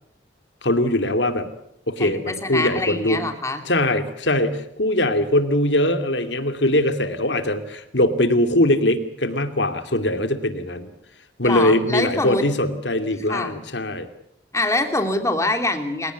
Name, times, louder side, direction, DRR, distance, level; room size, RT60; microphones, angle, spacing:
voice 1, 0.6-1.5 1.9-3.2 3.6-10.9 11.4-14.1, left 1 dB, 75° left, 8 dB, 2.6 m, -21 dB
voice 2, 2.0-3.6 11.4-12.4 13.3-13.6 14.5-16.1, left 2 dB, 15° left, 6 dB, 3.1 m, -24 dB
29.0 x 18.0 x 9.5 m, 0.77 s
head